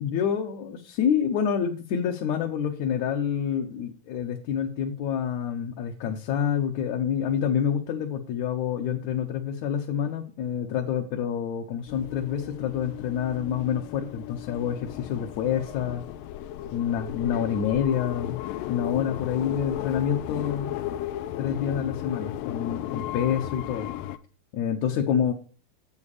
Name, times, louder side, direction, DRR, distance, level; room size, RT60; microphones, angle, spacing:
voice 1, 0.0-16.0 16.7-18.4 18.7-20.7 21.4-23.9 24.5-25.3, left 8 dB, 65° left, 2 dB, 2.0 m, -27 dB
sound 1, 11.9-24.2, left 13 dB, 90° left, 2.4 m, -35 dB
9.8 x 7.8 x 4.9 m, 0.37 s
omnidirectional pair, 4.0 m